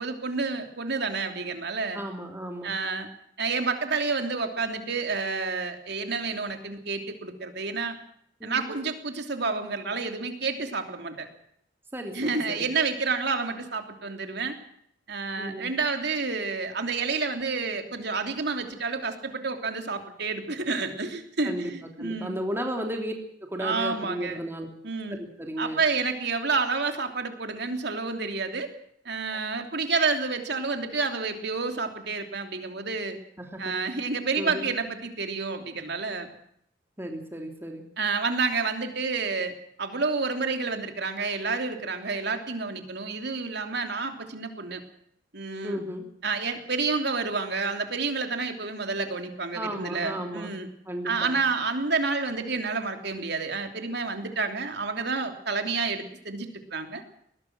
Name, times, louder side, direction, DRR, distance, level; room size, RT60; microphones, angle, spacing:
voice 1, 0.0-2.0 2.6-3.1 3.4-8.0 8.4-11.3 12.1-14.6 15.1-22.3 23.6-24.4 24.8-25.2 25.6-28.7 29.0-33.2 33.6-36.3 38.0-44.8 45.3-45.8 46.2-50.7 51.0-57.0, right 4 dB, 60° right, 5 dB, 3.2 m, -29 dB
voice 2, 1.9-2.8 8.4-8.7 11.9-12.7 15.4-15.7 21.4-21.7 22.0-23.1 23.4-24.7 25.1-25.8 29.3-29.4 33.4-33.7 34.4-34.7 37.0-37.8 45.6-46.0 49.5-50.5 50.9-51.4, equal, 15° right, 3 dB, 3.0 m, -34 dB
21.5 x 19.5 x 6.2 m, 0.69 s
head